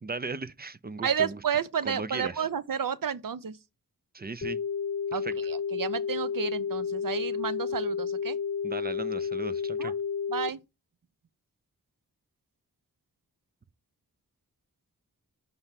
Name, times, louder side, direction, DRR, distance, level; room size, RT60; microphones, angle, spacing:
voice 1, 0.0-1.4 1.8-2.5 4.1-4.6 5.2-5.4 8.6-9.9, right 3 dB, 30° right, 0.4 m, -37 dB
voice 2, 1.0-3.5 5.1-8.4 9.8-9.9 10.3-10.6, right 7 dB, 70° right, 0.6 m, -31 dB
sound 1, 4.4-10.5, left 6 dB, 45° left, 0.7 m, -31 dB
5.5 x 3.4 x 5.7 m
wide cardioid pair, 75°, 35 cm